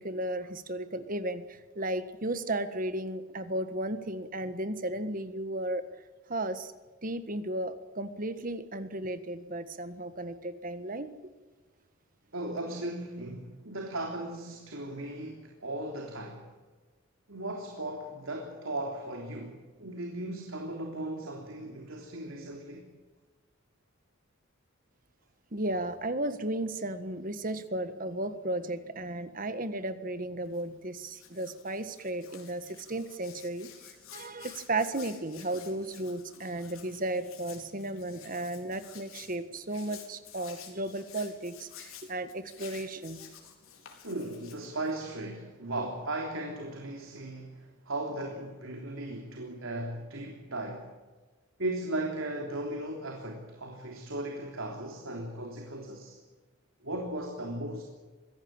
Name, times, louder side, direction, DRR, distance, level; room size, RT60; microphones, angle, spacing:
voice 1, 0.0-5.8 6.3-6.7 7.0-11.1 25.5-33.7 34.1-43.3 45.8-45.9, right 1 dB, 40° right, 11 dB, 1.6 m, -34 dB
voice 2, 12.3-16.5 17.3-22.9 44.0-50.9 51.6-56.2 56.8-57.8, right 1 dB, 75° right, 1 dB, 3.4 m, -37 dB
Hands, 30.4-45.1, left 8 dB, 90° left, 4.5 m, -52 dB
23.5 x 17.0 x 9.0 m, 1.3 s
head